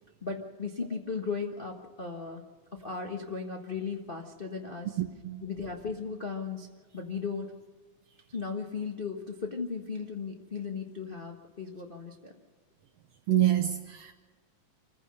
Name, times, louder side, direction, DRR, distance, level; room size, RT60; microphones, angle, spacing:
voice 1, 0.2-2.4 2.8-5.0 5.4-6.7 6.9-7.5 8.3-12.3, left 5 dB, 80° left, 0.5 m, -36 dB
voice 2, 5.0-5.4 13.3-14.1, right 13 dB, 70° right, 1.6 m, -27 dB
26.0 x 15.5 x 6.5 m
omnidirectional pair, 3.6 m